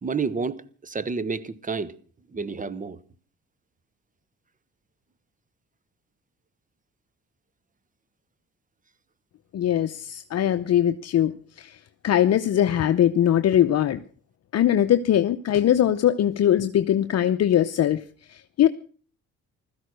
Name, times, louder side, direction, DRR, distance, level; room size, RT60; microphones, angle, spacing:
voice 1, 0.0-2.0 2.3-3.0, right 4 dB, 25° right, 1.1 m, -30 dB
voice 2, 9.5-14.0 14.5-18.0 18.3-18.7, left 11 dB, 55° left, 0.8 m, -21 dB
16.0 x 13.5 x 6.4 m
cardioid pair, 90°, 30 cm